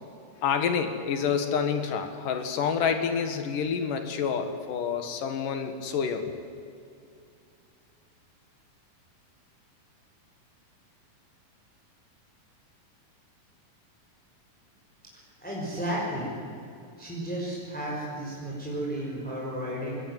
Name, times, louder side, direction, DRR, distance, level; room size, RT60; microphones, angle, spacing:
voice 1, 0.4-6.3, left 6 dB, 75° left, 7 dB, 3.3 m, -28 dB
voice 2, 15.4-16.4 17.0-20.0, right 1 dB, ahead, -5 dB, 5.4 m, -33 dB
22.0 x 20.0 x 9.6 m, 2.5 s
omnidirectional pair, 3.9 m